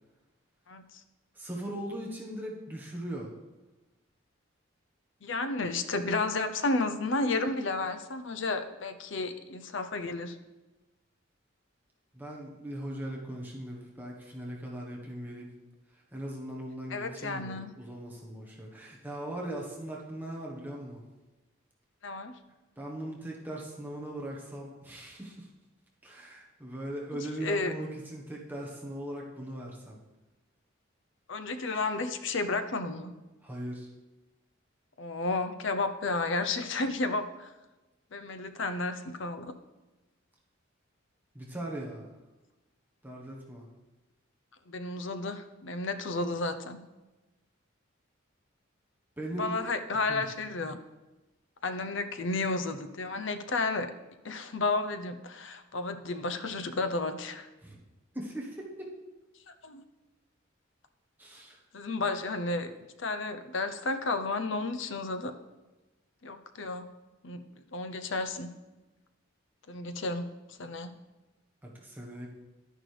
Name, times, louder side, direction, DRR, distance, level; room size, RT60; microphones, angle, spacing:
voice 1, 1.3-3.3 12.1-15.5 15.9-21.0 22.8-25.5 26.0-30.0 33.4-33.9 41.3-42.1 43.0-43.7 49.2-49.6 50.1-50.2 57.6-57.8 58.1-58.9 61.2-61.6 71.6-72.3, right 1 dB, 10° right, -3 dB, 1.2 m, -39 dB
voice 2, 5.2-10.4 16.9-17.7 22.0-22.3 27.4-27.7 31.3-33.2 35.0-37.5 38.1-39.5 44.7-46.8 49.3-50.8 51.6-53.9 54.2-57.5 59.5-59.8 61.7-62.7 63.0-65.3 66.2-66.9 67.2-67.4 67.7-68.5 69.7-70.9, left 3 dB, 65° left, 9 dB, 0.7 m, -32 dB
11.0 x 10.0 x 3.3 m, 1.1 s
head